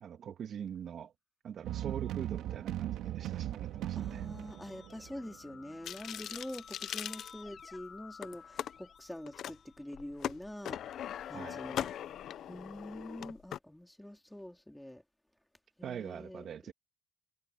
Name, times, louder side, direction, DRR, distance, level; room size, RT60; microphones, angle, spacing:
voice 1, 0.0-1.1 1.4-4.3 11.3-11.7 15.8-16.7, right 8 dB, 65° right, 1.8 m, -43 dB
sound 1, 1.6-5.7, right 12 dB, 85° right, 1.9 m, -38 dB
Keyboard (musical), 3.6-10.2, left 6 dB, 50° left, 3.0 m, -55 dB
voice 2, 3.9-10.8 11.3-11.9 12.5-15.0 15.8-16.7, left 1 dB, 5° left, 2.8 m, -45 dB
sound 2, 5.8-7.8 8.2-8.7 9.3-9.5 9.9-13.6, left 10 dB, 70° left, 0.7 m, -40 dB
cardioid pair, 90°, 0 cm